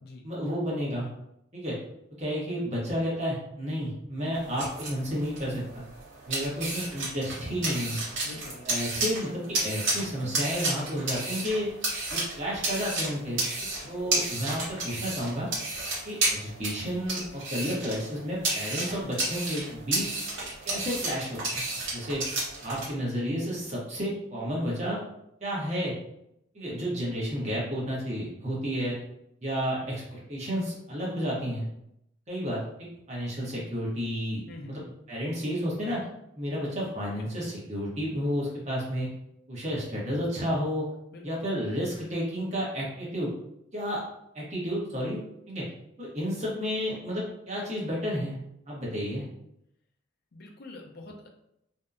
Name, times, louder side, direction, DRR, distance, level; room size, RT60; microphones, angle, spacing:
voice 1, 0.2-1.1 1.5-1.8 2.2-5.8 6.3-8.0 8.7-11.7 12.1-13.4 13.9-15.5 16.0-20.1 20.6-21.6 21.9-22.2 22.6-25.0 25.4-25.9 26.5-29.0 29.4-31.6 32.3-34.8 35.1-36.0 36.4-39.1 39.5-40.9 41.2-43.3 43.7-44.0 44.3-45.2 45.5-45.7 46.0-48.3 48.7-49.2, equal, 35° right, -5 dB, 0.9 m, -31 dB
sound 1, 4.3-22.9, right 2 dB, 80° right, 1.0 m, -32 dB
voice 2, 8.2-8.7 22.8-22.9 29.8-29.9 34.5-35.0 41.1-41.3 50.3-51.3, left 2 dB, 55° left, 2 dB, 0.4 m, -45 dB
2.7 x 2.1 x 2.4 m, 0.79 s
head